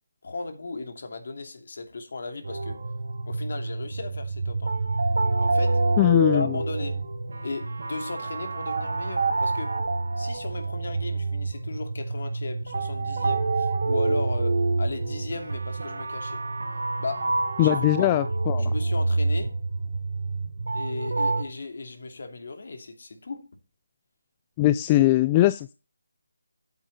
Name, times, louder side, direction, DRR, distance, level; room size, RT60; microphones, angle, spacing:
voice 1, 0.2-2.8 3.3-4.8 5.4-7.0 7.4-9.8 10.2-16.4 17.0-18.1 18.6-19.5 20.7-23.6, left 3 dB, 55° left, 2.7 m, -36 dB
sound 1, 2.4-21.4, right 3 dB, 65° right, 2.0 m, -27 dB
voice 2, 6.0-6.6 17.6-18.7 24.6-25.7, left 15 dB, 20° left, 0.4 m, -21 dB
9.0 x 8.2 x 4.1 m
figure-of-eight pair, 165°, 0 cm